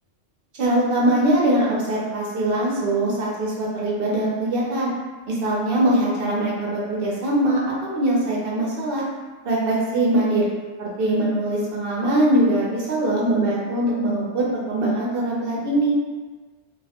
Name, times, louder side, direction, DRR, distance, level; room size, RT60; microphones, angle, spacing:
voice 1, 0.6-4.9 5.3-9.0 9.4-10.4 10.8-15.9, right 1 dB, 60° right, -4 dB, 0.6 m, -22 dB
2.3 x 2.1 x 2.7 m, 1.3 s
omnidirectional pair, 1.3 m